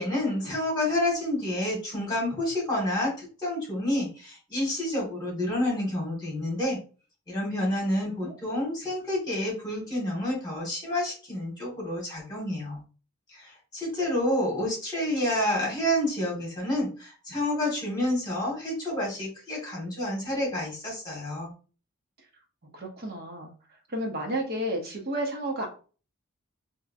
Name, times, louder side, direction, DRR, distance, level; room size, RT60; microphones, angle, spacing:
voice 1, 0.0-6.8 7.3-12.8 13.3-21.5, left 1 dB, 20° left, -4 dB, 1.8 m, -29 dB
voice 2, 7.7-8.3 22.7-23.5 23.9-25.7, right 1 dB, 45° right, 1 dB, 0.9 m, -32 dB
3.6 x 2.7 x 2.6 m, 0.37 s
head